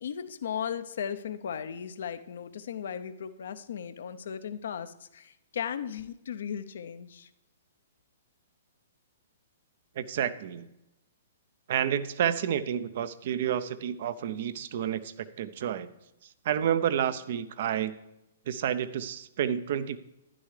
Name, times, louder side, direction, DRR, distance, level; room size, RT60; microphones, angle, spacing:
voice 1, 0.0-7.3, left 8 dB, 70° left, 11 dB, 0.5 m, -36 dB
voice 2, 10.0-10.7 11.7-15.9 16.4-18.0 18.5-20.0, right 9 dB, 55° right, 14 dB, 0.6 m, -30 dB
11.5 x 10.0 x 3.2 m, 0.88 s
hypercardioid pair, 125°, 0 cm